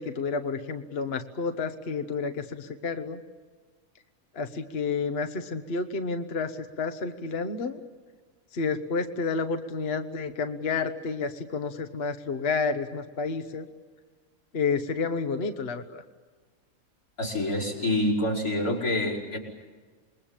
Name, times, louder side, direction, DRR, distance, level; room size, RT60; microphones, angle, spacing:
voice 1, 0.0-3.2 4.3-7.8 8.5-13.7 14.5-16.0, left 4 dB, 45° left, 7 dB, 1.4 m, -30 dB
voice 2, 17.2-19.4, left 1 dB, 90° left, -4 dB, 6.0 m, -27 dB
28.0 x 21.5 x 9.0 m, 1.4 s
omnidirectional pair, 1.5 m